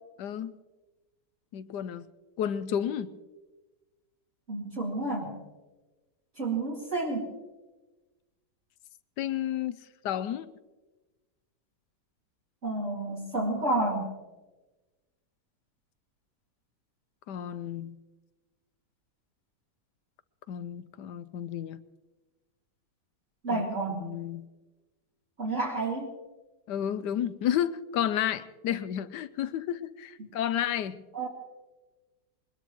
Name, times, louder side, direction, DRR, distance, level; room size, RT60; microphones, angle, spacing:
voice 1, 0.2-0.6 1.5-2.1 2.4-3.2 9.2-10.5 17.3-18.0 20.5-21.8 23.5-23.7 24.0-24.4 26.7-31.0, left 10 dB, 80° left, 14 dB, 1.3 m, -31 dB
voice 2, 4.5-5.3 6.4-7.3 12.6-14.1 23.4-24.2 25.4-26.1 30.2-30.3 31.1-31.3, right 2 dB, 45° right, -4 dB, 2.6 m, -30 dB
22.5 x 20.5 x 3.1 m, 1.2 s
omnidirectional pair, 1.8 m